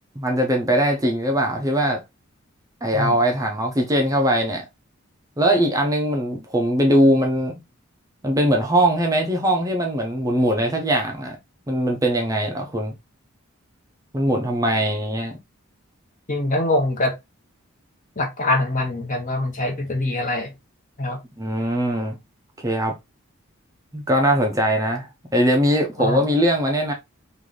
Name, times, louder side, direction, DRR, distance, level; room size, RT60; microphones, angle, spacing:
voice 1, 0.2-2.0 2.8-4.7 5.4-7.5 8.2-11.4 11.7-12.9 14.1-15.3 21.4-22.2 22.6-22.9 23.9-26.9, equal, 15° right, 0.6 m, -21 dB
voice 2, 16.3-17.1 18.2-20.5 21.0-21.2 26.0-26.3, left 2 dB, 35° left, 0.9 m, -23 dB
3.1 x 2.6 x 3.8 m
head